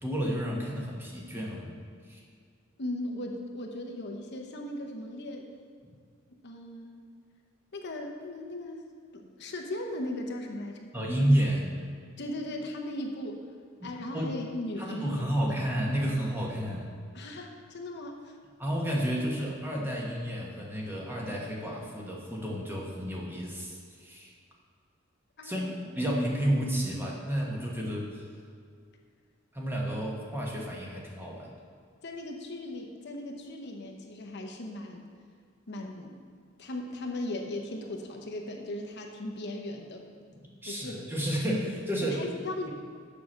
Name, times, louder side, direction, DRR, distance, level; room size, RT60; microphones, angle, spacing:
voice 1, 0.0-2.2 10.9-11.8 13.8-14.3 14.8-16.9 18.6-24.3 25.4-28.2 29.5-31.6 40.3-42.2, equal, 10° right, -3 dB, 1.3 m, -31 dB
voice 2, 2.8-5.5 6.4-7.0 7.7-8.9 9.1-10.9 12.2-13.5 13.8-15.6 17.1-18.4 25.4-25.7 32.0-35.1 35.7-36.1 36.6-40.1 40.7-41.1 42.1-42.7, left 1 dB, 55° left, 2 dB, 0.9 m, -38 dB
7.1 x 5.9 x 6.5 m, 2.1 s
head